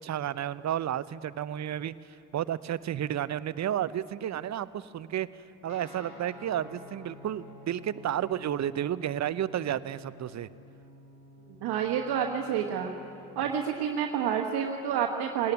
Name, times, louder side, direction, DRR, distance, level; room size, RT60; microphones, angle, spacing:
voice 1, 0.0-1.9 2.3-5.3 5.6-10.5, right 10 dB, 40° right, 17 dB, 0.7 m, -32 dB
Guitar, 5.7-13.7, left 2 dB, 50° left, 4.8 m, -51 dB
voice 2, 11.6-12.9 13.3-15.5, right 8 dB, 65° right, 2 dB, 1.4 m, -29 dB
18.5 x 18.0 x 9.8 m, 2.7 s
hypercardioid pair, 45°, 43 cm